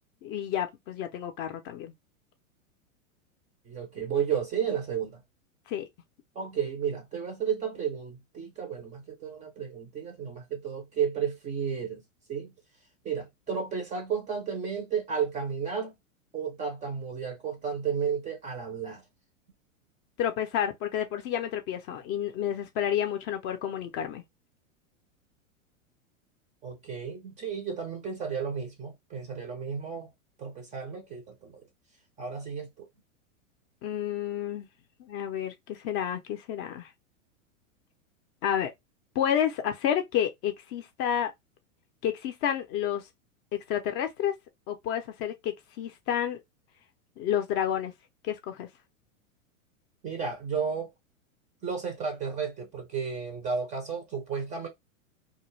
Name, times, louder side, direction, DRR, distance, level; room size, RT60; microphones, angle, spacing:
voice 1, 0.2-1.9 5.7-5.9 20.2-24.2 33.8-34.7 35.0-36.9 38.4-38.7 39.2-41.3 42.0-43.0 43.5-44.4 44.7-46.4 47.2-47.9 48.2-48.7, left 10 dB, 35° left, 0.5 m, -30 dB
voice 2, 3.7-5.2 6.4-12.0 12.3-12.5 13.0-15.9 16.3-19.0 26.6-30.1 30.4-31.6 32.2-32.9 50.0-50.9 51.6-54.7, right 7 dB, 20° right, 0.4 m, -33 dB
2.3 x 2.1 x 3.0 m
hypercardioid pair, 115°, 41 cm